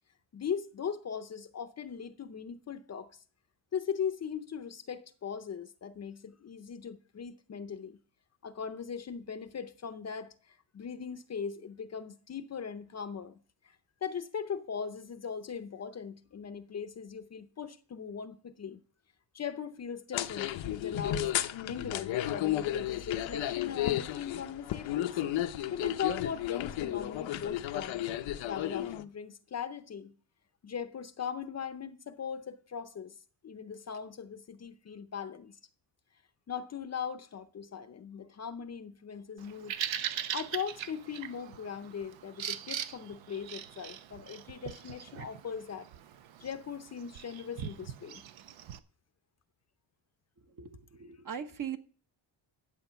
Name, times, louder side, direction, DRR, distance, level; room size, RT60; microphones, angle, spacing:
voice 1, 0.3-3.1 3.7-8.0 8.4-13.4 13.6-13.8 14.0-18.8 19.3-21.3 21.6-25.2 25.7-28.0 28.4-30.1 30.6-33.1 33.4-35.6 36.5-39.8 40.3-45.9 46.4-48.2, left 7 dB, 35° left, 0.6 m, -39 dB
sound 1, 20.1-29.0, left 13 dB, 90° left, 0.8 m, -33 dB
Bird vocalization bird call bird song, 39.4-48.8, right 10 dB, 85° right, 0.9 m, -41 dB
voice 2, 50.4-51.8, right 8 dB, 45° right, 1.1 m, -40 dB
11.0 x 7.7 x 5.7 m
wide cardioid pair, 155°, 44 cm